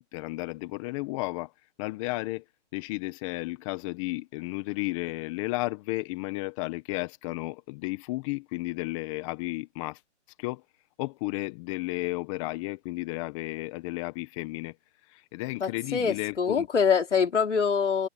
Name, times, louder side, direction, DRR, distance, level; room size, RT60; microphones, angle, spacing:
voice 1, 0.1-1.5 1.8-2.4 2.7-10.0 10.4-10.6 11.0-14.7 15.1-16.7, left 22 dB, 25° left, 1.3 m, -33 dB
voice 2, 15.6-18.1, left 6 dB, 90° left, 5.0 m, -25 dB
hypercardioid pair, 150°, 35 cm